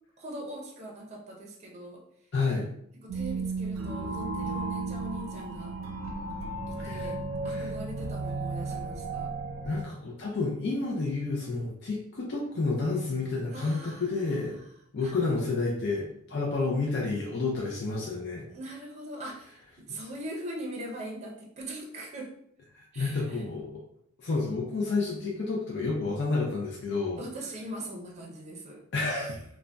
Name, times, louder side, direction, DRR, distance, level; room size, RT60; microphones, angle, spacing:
voice 1, 0.2-2.0 3.0-5.7 6.7-7.2 7.4-9.3 13.5-14.0 15.0-15.1 18.5-19.6 19.9-22.3 22.9-23.4 27.2-28.8, right 1 dB, 35° right, -1 dB, 0.5 m, -41 dB
voice 2, 2.3-2.7 6.8-7.1 7.5-7.7 9.6-14.6 14.9-18.4 19.9-20.1 22.7-23.8 24.2-27.2 28.9-29.4, left 3 dB, 55° left, -3 dB, 0.5 m, -30 dB
sound 1, 3.1-9.8, right 3 dB, 90° right, 0.4 m, -34 dB
2.5 x 2.1 x 3.2 m, 0.71 s
head